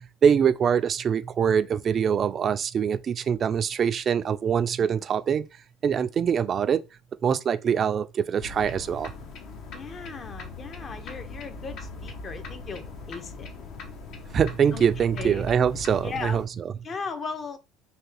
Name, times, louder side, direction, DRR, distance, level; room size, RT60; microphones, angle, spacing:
voice 1, 0.2-5.4 5.8-6.8 7.2-9.1 14.3-16.4, right 7 dB, 40° right, 0.3 m, -23 dB
sound 1, 8.4-16.5, left 3 dB, 60° left, 0.9 m, -40 dB
voice 2, 9.7-13.5 14.7-15.5 16.0-16.5 16.8-17.6, left 5 dB, 35° left, 0.7 m, -37 dB
3.5 x 2.8 x 3.3 m
supercardioid pair, 95°, 0 cm